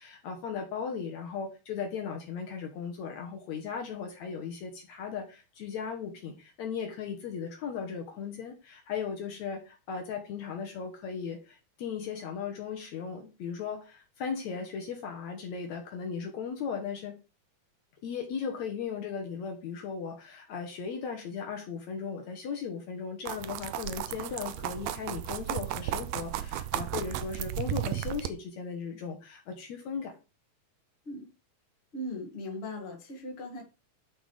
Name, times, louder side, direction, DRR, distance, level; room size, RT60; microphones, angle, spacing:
voice 1, 0.0-17.2 18.0-30.1, left 6 dB, 65° left, 3 dB, 2.2 m, -37 dB
sound 1, 23.3-28.3, right 12 dB, 80° right, 1.6 m, -34 dB
voice 2, 31.9-33.6, left 1 dB, 25° left, 0 dB, 1.8 m, -38 dB
11.5 x 4.0 x 4.8 m, 0.31 s
omnidirectional pair, 3.7 m